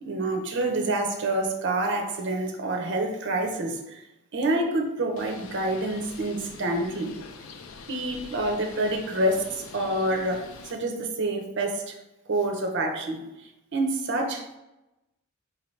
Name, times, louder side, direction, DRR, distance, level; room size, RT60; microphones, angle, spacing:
voice 1, 0.0-4.1 4.3-7.1 7.9-12.0 12.3-14.6, right 2 dB, 55° right, 3 dB, 0.6 m, -27 dB
Bird, 5.2-10.7, left 5 dB, 65° left, 0.4 m, -44 dB
4.1 x 2.8 x 3.1 m, 0.94 s
head